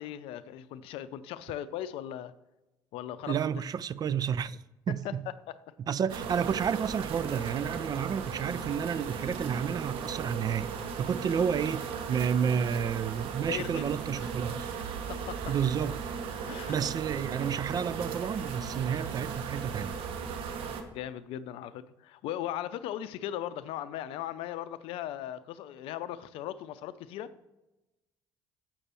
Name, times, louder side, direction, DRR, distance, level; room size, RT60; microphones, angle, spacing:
voice 1, 0.0-2.3 2.9-3.7 4.9-5.1 13.5-13.9 15.1-15.5 16.5-16.7 20.9-27.3, left 11 dB, 65° left, 0.5 m, -38 dB
voice 2, 3.3-5.3 5.9-14.7 15.5-16.1 16.7-20.0, right 7 dB, 40° right, 0.4 m, -31 dB
sound 1, 6.1-20.8, right 6 dB, 65° right, 1.0 m, -37 dB
7.6 x 6.7 x 4.4 m
hypercardioid pair, 55°, 10 cm